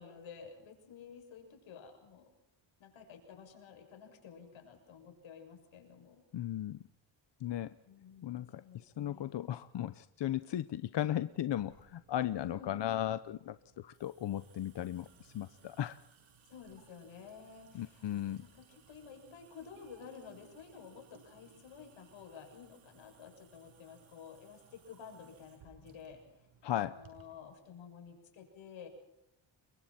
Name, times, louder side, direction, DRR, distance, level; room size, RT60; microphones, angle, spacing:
voice 1, 0.0-2.3 2.8-6.2 7.8-9.5 12.4-12.9 16.5-26.2 26.7-28.9, left 6 dB, 90° left, 4 dB, 6.9 m, -52 dB
voice 2, 6.3-6.8 7.4-7.7 8.2-16.0 17.7-18.4 26.6-27.0, left 12 dB, 65° left, 13 dB, 0.9 m, -36 dB
Water tap faucet / Sink (filling or washing) / Drip, 11.5-27.5, right 6 dB, 90° right, 7.1 m, -63 dB
30.0 x 23.0 x 4.4 m, 0.84 s
cardioid pair, 110°, 46 cm